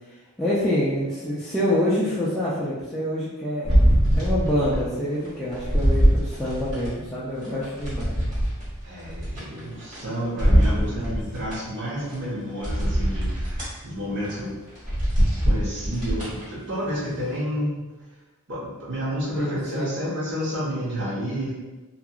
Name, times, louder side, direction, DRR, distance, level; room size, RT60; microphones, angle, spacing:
voice 1, 0.4-3.9 4.1-8.3 10.4-11.2 14.1-14.2 19.3-19.9, left 1 dB, ahead, -10 dB, 0.3 m, -27 dB
sound 1, 3.6-4.9 5.2-6.9 7.4-10.0 10.4-11.6 12.1-12.2 12.6-13.7 14.2-14.4 14.7-16.4 16.9-17.0, equal, 35° right, 1.2 m, -22 dB
voice 2, 8.8-14.5 15.4-17.8 18.5-21.5, equal, 50° right, -7 dB, 0.9 m, -30 dB
2.8 x 2.3 x 2.3 m, 1.1 s
head